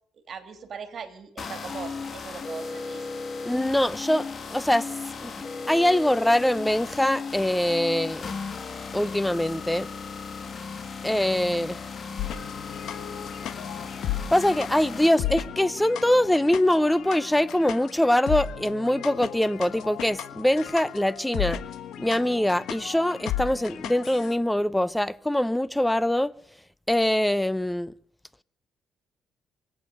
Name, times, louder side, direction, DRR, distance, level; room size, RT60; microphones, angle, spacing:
voice 1, 0.1-3.1, right 6 dB, 55° right, 2.7 m, -40 dB
sound 1, 1.4-15.1, left 4 dB, 45° left, 2.1 m, -36 dB
voice 2, 3.4-4.9 5.2-5.3 5.7-8.2 8.9-9.9 11.0-11.8 14.3-21.6 22.0-26.3 26.9-27.9, left 1 dB, 5° left, 0.7 m, -23 dB
sound 2, 12.2-24.4, left 11 dB, 75° left, 1.4 m, -35 dB
24.5 x 8.7 x 6.7 m
supercardioid pair, 70°, 0 cm